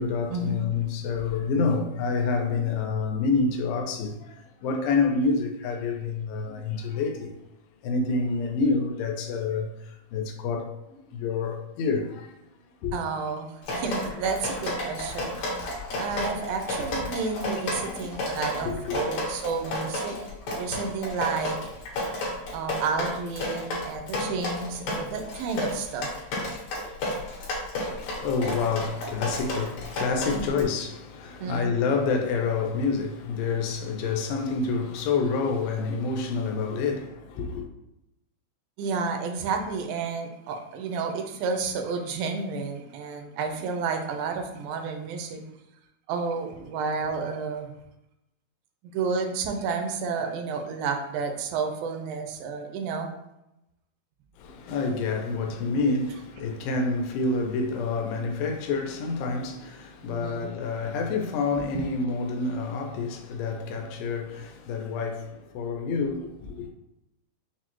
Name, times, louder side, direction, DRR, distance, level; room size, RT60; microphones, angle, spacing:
voice 1, 0.0-7.3 7.8-12.3 12.8-12.9 15.6-15.9 17.7-18.2 18.7-18.8 27.8-37.7 54.4-66.7, left 4 dB, 90° left, 2.3 m, -28 dB
voice 2, 12.9-15.3 15.9-20.2 20.6-21.6 22.5-26.1 30.3-30.5 31.4-31.8 38.8-45.4 46.1-47.7 48.9-53.1 60.0-60.6 61.7-61.9, right 5 dB, 85° right, 2.2 m, -31 dB
Drip, 13.6-30.6, left 1 dB, 65° left, 2.0 m, -32 dB
6.0 x 2.1 x 3.0 m
omnidirectional pair, 4.0 m